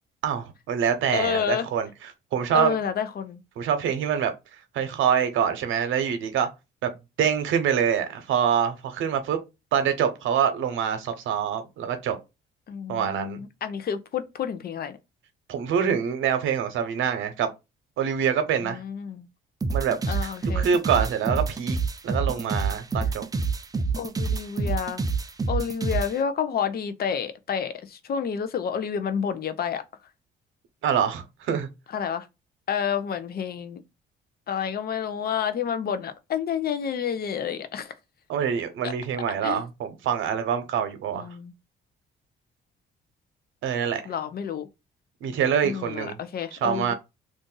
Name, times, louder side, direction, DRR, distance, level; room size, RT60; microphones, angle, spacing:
voice 1, 0.2-1.9 2.3-2.7 3.6-4.3 4.7-6.5 6.8-6.9 7.2-9.4 9.7-12.2 12.9-13.4 15.5-17.5 18.0-18.8 19.7-21.8 22.0-23.2 30.8-31.7 38.3-41.3 43.6-44.0 45.2-46.2 46.5-46.9, right 8 dB, 80° right, 0.8 m, -25 dB
voice 2, 1.1-1.7 2.5-3.4 12.7-15.0 18.6-19.3 20.1-20.7 24.0-25.0 25.5-29.8 31.9-32.3 32.7-33.8 34.5-37.9 38.8-38.9 39.4-39.6 41.1-41.5 44.1-44.7 45.6-46.9, left 7 dB, 50° left, 0.6 m, -29 dB
sound 1, 19.6-26.1, right 4 dB, 20° right, 0.4 m, -27 dB
2.5 x 2.5 x 3.8 m
cardioid pair, 90°, 20 cm